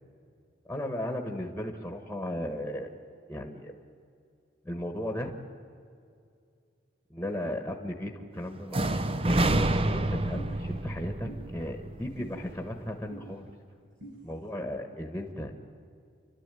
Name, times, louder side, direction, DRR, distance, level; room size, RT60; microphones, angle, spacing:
voice 1, 0.7-2.9 3.3-3.7 4.6-5.4 7.1-13.5 14.2-15.5, left 1 dB, 5° left, 3 dB, 1.4 m, -36 dB
sound 1, 8.7-12.6, right 1 dB, 30° right, 0.7 m, -28 dB
sound 2, 10.3-10.5 11.2-11.4 12.2-12.3 13.1-13.2 14.0-14.1, equal, 80° right, 6.8 m, -44 dB
30.0 x 12.5 x 9.2 m, 2.3 s
head